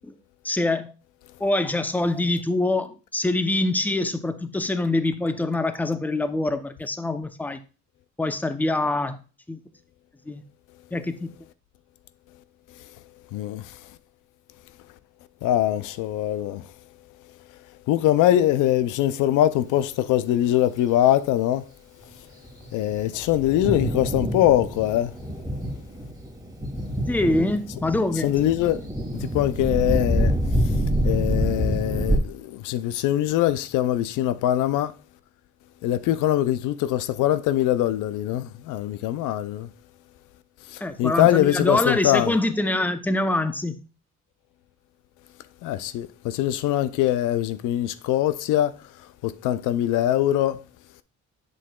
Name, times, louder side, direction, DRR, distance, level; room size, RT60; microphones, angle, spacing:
voice 1, 0.4-0.9 1.4-7.6 8.2-9.2 9.5-9.6 10.3-10.4 10.9-11.3 27.1-28.3 40.8-43.8, left 2 dB, 5° left, 0.6 m, -24 dB
voice 2, 13.3-13.8 15.4-16.7 17.9-21.7 22.7-25.1 28.2-28.8 29.2-30.4 30.6-30.8 31.0-34.9 35.8-39.7 40.7-42.3 45.6-48.7 49.2-50.6, left 13 dB, 90° left, 0.5 m, -23 dB
Thunder, 22.4-32.2, equal, 10° right, 1.8 m, -26 dB
7.4 x 6.2 x 2.3 m
cardioid pair, 90°, 30 cm